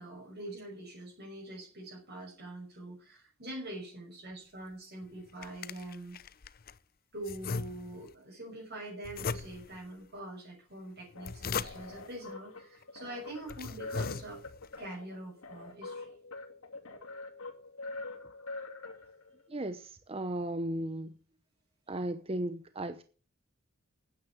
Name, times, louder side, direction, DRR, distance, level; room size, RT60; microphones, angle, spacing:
voice 1, 0.0-6.2 7.1-14.4 14.8-16.1, right 1 dB, 50° right, 6.0 m, -44 dB
sound 1, 5.0-6.8 7.2-8.1 9.0-9.8 11.0-12.1 12.8-12.9 13.4-14.7, left 5 dB, 45° left, 0.6 m, -39 dB
sound 2, 11.2-19.4, left 3 dB, 85° left, 2.7 m, -45 dB
voice 2, 19.5-21.1 21.9-23.0, right 1 dB, 25° right, 0.8 m, -35 dB
9.7 x 9.6 x 7.6 m
head